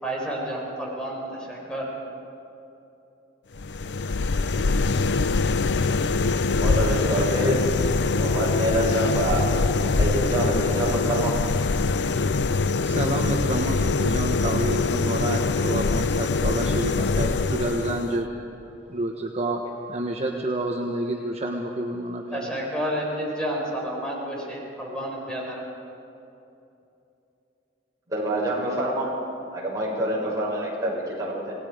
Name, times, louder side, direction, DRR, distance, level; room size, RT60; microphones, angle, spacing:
voice 1, 0.0-1.2 1.5-1.8 22.3-25.6, equal, 5° left, -3 dB, 4.4 m, -30 dB
sound 1, 3.5-18.2, left 3 dB, 75° left, 0.6 m, -23 dB
voice 2, 6.5-7.6 8.1-9.6 10.0-11.3 28.1-29.1 29.5-31.6, right 1 dB, 20° right, -6 dB, 6.8 m, -26 dB
voice 3, 12.8-18.3 18.9-19.6 19.9-22.5, right 1 dB, 35° right, 1 dB, 1.2 m, -29 dB
28.0 x 19.0 x 5.1 m, 2.8 s
head